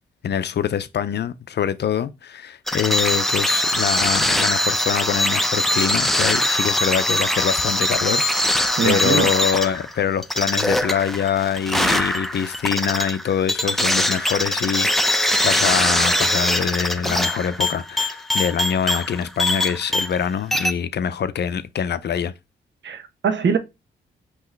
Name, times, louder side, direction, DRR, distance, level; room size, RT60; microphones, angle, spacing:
voice 1, 0.2-22.3, left 8 dB, 60° left, 0.5 m, -24 dB
sound 1, 2.7-20.2 20.5-20.7, left 1 dB, ahead, 0.7 m, -22 dB
voice 2, 8.8-9.3 22.8-23.6, right 6 dB, 65° right, 1.0 m, -22 dB
5.6 x 3.0 x 3.1 m
supercardioid pair, 55°, 20 cm